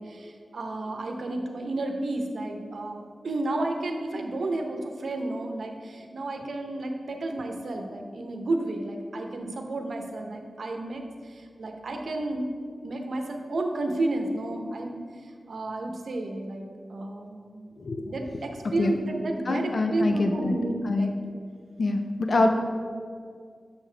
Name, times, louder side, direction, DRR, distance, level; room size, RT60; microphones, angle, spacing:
voice 1, 0.0-12.5 12.8-17.6 18.0-21.1 22.3-22.5, right 2 dB, 75° right, 3 dB, 0.8 m, -32 dB
voice 2, 19.5-20.6 20.8-21.1 21.8-22.5, left 2 dB, 55° left, 4 dB, 0.5 m, -25 dB
7.1 x 6.7 x 3.3 m, 2.1 s
wide cardioid pair, 100°, 0 cm